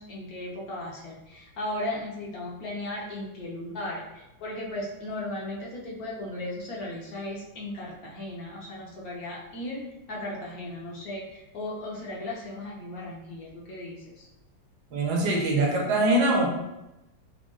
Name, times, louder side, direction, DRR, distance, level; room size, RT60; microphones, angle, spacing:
voice 1, 0.0-14.3, left 1 dB, 60° left, -3 dB, 1.0 m, -36 dB
voice 2, 14.9-16.5, right 1 dB, 65° right, -1 dB, 1.3 m, -23 dB
6.1 x 2.2 x 2.5 m, 0.94 s
omnidirectional pair, 2.1 m